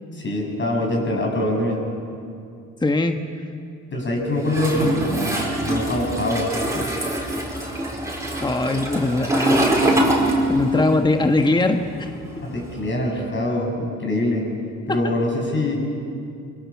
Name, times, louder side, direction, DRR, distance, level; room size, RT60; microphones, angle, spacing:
voice 1, 0.1-1.8 3.9-5.3 5.7-6.5 10.7-10.8 12.4-14.5 14.9-15.7, left 1 dB, 40° left, 0 dB, 7.8 m, -24 dB
voice 2, 2.8-3.2 8.4-9.7 10.5-12.1 12.3-12.4 14.9-15.0, left 2 dB, 15° left, 6 dB, 1.3 m, -21 dB
Toilet flush, 4.5-10.9 11.2-12.8, right 1 dB, 10° right, 5.3 m, -23 dB
26.0 x 23.5 x 7.3 m, 2.5 s
cardioid pair, 90°, 30 cm